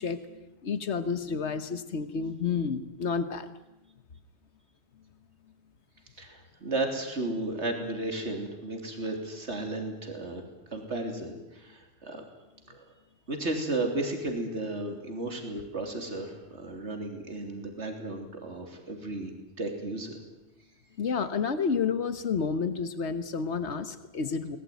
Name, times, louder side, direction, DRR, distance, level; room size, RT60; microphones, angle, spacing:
voice 1, 0.0-3.5 21.0-24.6, left 5 dB, 90° left, 11 dB, 1.5 m, -30 dB
voice 2, 6.2-10.4 10.7-12.2 12.7-12.9 13.3-20.2, right 2 dB, 90° right, 4 dB, 3.6 m, -34 dB
23.5 x 19.5 x 9.3 m, 0.96 s
omnidirectional pair, 1.1 m